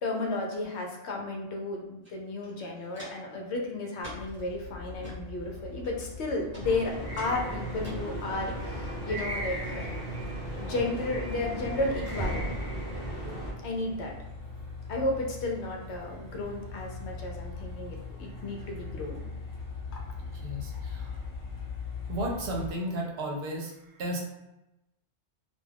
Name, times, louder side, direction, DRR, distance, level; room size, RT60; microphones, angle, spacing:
voice 1, 0.0-9.9 10.6-12.4 13.6-14.1 14.9-19.2, left 2 dB, 75° left, 1 dB, 0.9 m, -33 dB
Walk footsteps, 2.0-2.1 2.4-3.3 4.0-4.4 4.9-5.2 5.8-6.2 6.5-6.7 7.1-8.0 8.5-8.8 9.1-9.3 9.8-9.9, equal, 10° right, 0.9 m, -47 dB
Truck, 4.0-22.7, left 4 dB, 50° left, 1.2 m, -42 dB
sound 1, 6.6-13.5, right 1 dB, 25° left, 0.8 m, -35 dB
voice 2, 20.4-21.2 22.1-24.2, right 1 dB, 70° right, 0 dB, 0.8 m, -34 dB
2.3 x 2.3 x 3.2 m, 0.94 s
omnidirectional pair, 1.1 m